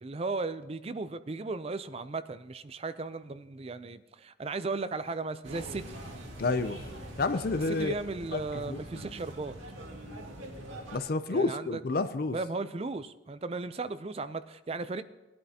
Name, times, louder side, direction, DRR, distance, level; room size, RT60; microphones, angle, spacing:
voice 1, 0.0-6.0 7.8-9.6 11.3-11.8 12.3-15.0, right 3 dB, 30° right, 12 dB, 0.4 m, -36 dB
sound 1, 5.4-11.0, right 1 dB, 80° right, 2.0 m, -44 dB
voice 2, 6.4-6.9 7.2-7.9 8.3-8.4 8.7-9.2 10.9-12.4, left 3 dB, 50° left, 12 dB, 0.5 m, -30 dB
17.5 x 11.0 x 2.8 m, 1.1 s
head